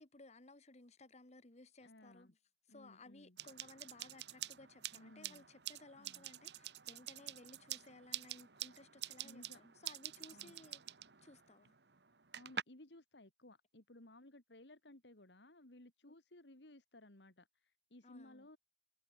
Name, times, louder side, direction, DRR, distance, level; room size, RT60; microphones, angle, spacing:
voice 1, 0.0-2.3 2.7-10.8 11.2-11.7 18.0-18.5, left 2 dB, 40° left, 1.6 m, -59 dB
voice 2, 1.8-2.3 2.7-3.4 4.9-5.5 6.0-6.3 9.2-9.6 10.3-10.6 12.3-18.6, left 1 dB, 75° left, 2.8 m, -59 dB
sound 1, 3.4-12.6, right 11 dB, 70° right, 1.5 m, -48 dB
head